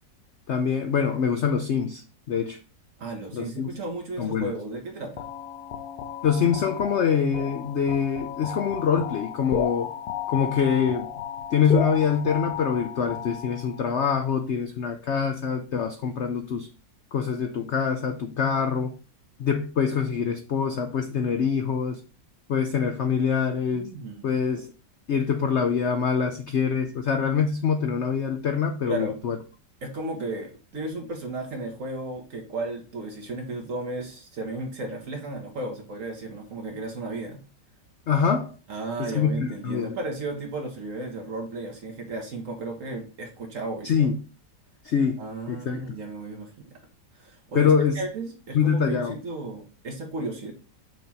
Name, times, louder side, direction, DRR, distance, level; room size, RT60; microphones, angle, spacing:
voice 1, 0.5-2.6 3.3-3.7 4.2-4.5 6.2-9.9 10.3-11.1 11.5-16.7 17.1-19.0 19.4-22.0 22.5-23.9 24.2-24.7 25.1-29.4 38.1-38.5 39.0-40.0 43.8-44.2 44.8-45.2 45.5-45.8 47.5-48.0 48.5-49.2, left 6 dB, 85° left, 0.6 m, -24 dB
voice 2, 3.0-5.2 23.7-24.3 28.9-29.2 29.8-37.4 38.7-44.1 45.2-46.7 47.2-50.5, right 2 dB, 50° right, 1.6 m, -34 dB
sound 1, 5.2-13.9, left 8 dB, 65° left, 1.1 m, -33 dB
6.2 x 3.0 x 5.5 m
omnidirectional pair, 1.9 m